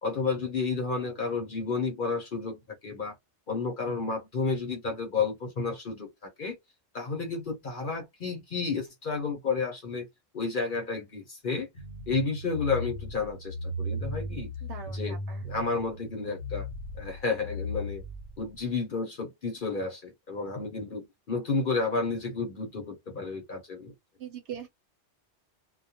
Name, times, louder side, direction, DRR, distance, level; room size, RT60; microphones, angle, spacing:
voice 1, 0.0-3.1 3.5-6.6 6.9-10.1 10.3-11.7 12.1-14.5 14.9-15.2 15.4-16.7 16.9-18.0 18.4-23.9, left 4 dB, 50° left, 0.8 m, -31 dB
sound 1, 11.8-18.7, left 1 dB, 90° left, 1.0 m, -37 dB
voice 2, 14.6-15.4 24.2-24.7, right 8 dB, 75° right, 0.9 m, -41 dB
2.3 x 2.2 x 2.7 m
omnidirectional pair, 1.2 m